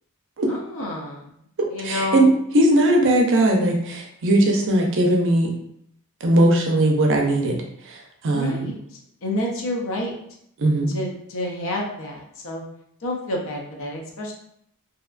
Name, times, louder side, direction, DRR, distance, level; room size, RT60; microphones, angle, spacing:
voice 1, 0.5-1.3 1.7-2.3 8.3-10.1 10.9-12.6 13.0-14.3, left 1 dB, 65° left, -1 dB, 0.6 m, -29 dB
voice 2, 1.8-5.5 6.2-7.6 7.9-8.7 10.6-10.9, right 1 dB, 55° right, 1 dB, 0.5 m, -19 dB
2.8 x 2.2 x 2.4 m, 0.72 s
head